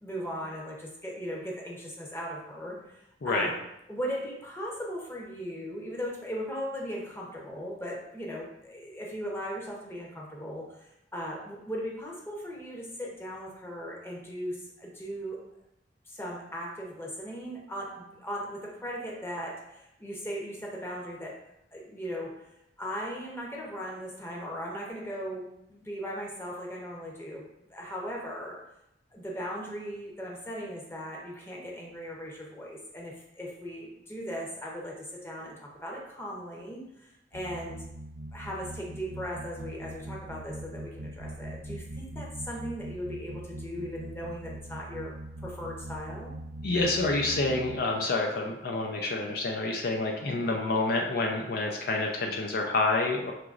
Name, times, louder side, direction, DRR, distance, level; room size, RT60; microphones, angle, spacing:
voice 1, 0.0-3.5 3.9-10.7 11.1-15.4 16.1-21.4 21.7-22.5 22.8-27.4 27.7-28.6 29.1-37.8 38.3-45.1 45.4-46.3 50.4-50.5, equal, 15° left, -3 dB, 0.8 m, -38 dB
sound 1, 37.3-47.8, right 1 dB, 85° right, 0.6 m, -41 dB
voice 2, 46.6-53.3, left 2 dB, 60° left, 1 dB, 0.5 m, -28 dB
6.0 x 3.0 x 2.4 m, 0.84 s
head